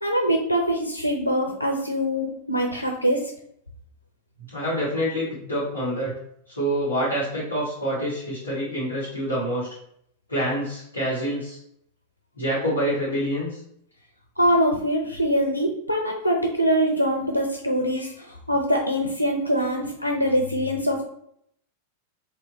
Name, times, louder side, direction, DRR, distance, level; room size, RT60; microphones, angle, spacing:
voice 1, 0.0-3.2 14.4-18.1 18.5-21.0, equal, 90° right, 2 dB, 0.5 m, -23 dB
voice 2, 4.5-6.1 6.5-9.7 10.3-11.6 12.4-13.6, equal, 80° left, -10 dB, 1.5 m, -26 dB
3.2 x 2.7 x 3.9 m, 0.70 s
figure-of-eight pair, 90°, 0 cm